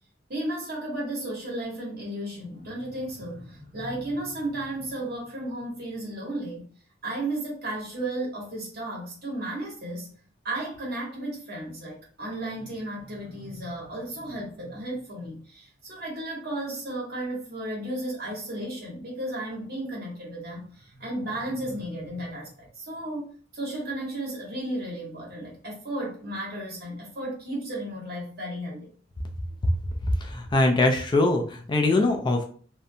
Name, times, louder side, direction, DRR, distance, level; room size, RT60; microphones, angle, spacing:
voice 1, 0.3-6.6 7.0-10.1 10.4-23.3 23.5-28.9, right 1 dB, 55° right, -3 dB, 1.2 m, -34 dB
voice 2, 30.2-32.4, left 2 dB, 25° left, 3 dB, 0.3 m, -22 dB
2.5 x 2.1 x 2.7 m, 0.43 s
head